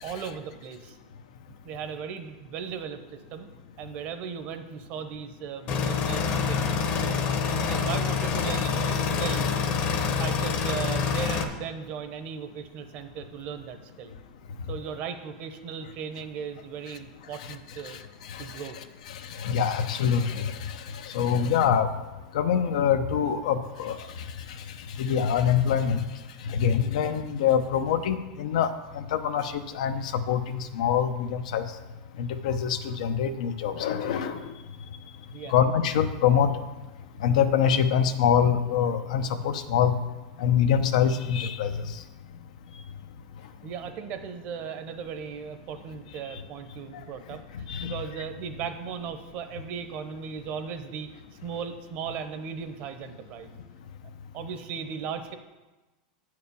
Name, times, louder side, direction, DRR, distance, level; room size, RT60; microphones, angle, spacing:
voice 1, 0.0-1.0 1.6-3.5 3.8-6.2 6.5-7.1 7.5-9.5 10.2-14.1 14.7-18.0 18.4-18.8 35.3-35.5 43.6-53.6 54.3-55.3, right 7 dB, 40° right, 8 dB, 0.9 m, -37 dB
sound 1, 5.7-11.4, left 6 dB, 40° left, 0.9 m, -26 dB
voice 2, 18.3-21.9 22.3-24.0 24.9-26.0 26.4-31.7 32.2-34.5 35.5-36.5 37.2-40.0 40.4-41.9 47.7-48.0, left 8 dB, 80° left, 8 dB, 0.8 m, -25 dB
8.4 x 4.9 x 6.9 m, 1.1 s
supercardioid pair, 155°, 4 cm